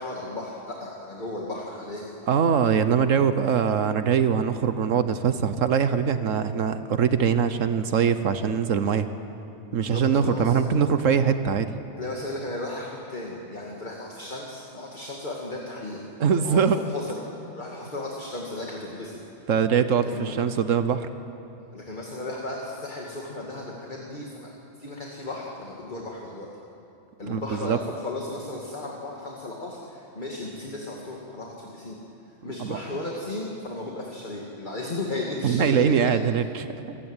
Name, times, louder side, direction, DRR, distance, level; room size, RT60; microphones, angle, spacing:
voice 1, 0.0-2.1 9.7-10.7 12.0-16.0 16.3-19.4 20.0-20.4 21.7-24.5 24.8-26.5 27.2-32.0 32.4-36.2, left 2 dB, 35° left, -2 dB, 2.3 m, -35 dB
voice 2, 2.3-9.1 9.7-11.7 16.2-16.8 19.5-21.1 27.3-27.8 32.4-32.8 35.4-37.0, right 7 dB, 75° right, 10 dB, 1.3 m, -22 dB
25.5 x 16.5 x 9.0 m, 2.7 s
omnidirectional pair, 1.3 m